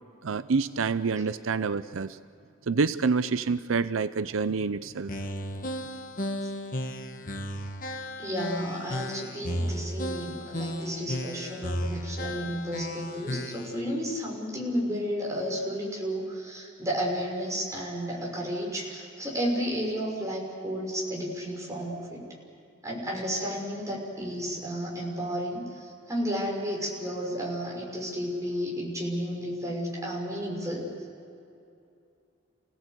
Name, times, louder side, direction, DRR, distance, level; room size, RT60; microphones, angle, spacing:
voice 1, 0.2-2.2 2.7-5.1, right 4 dB, 80° right, 13 dB, 0.6 m, -27 dB
sound 1, 5.1-13.8, equal, 40° left, 1.5 m, -34 dB
voice 2, 8.2-22.2 22.8-30.9, equal, 15° right, -2 dB, 5.9 m, -32 dB
29.0 x 17.5 x 8.2 m, 2.6 s
head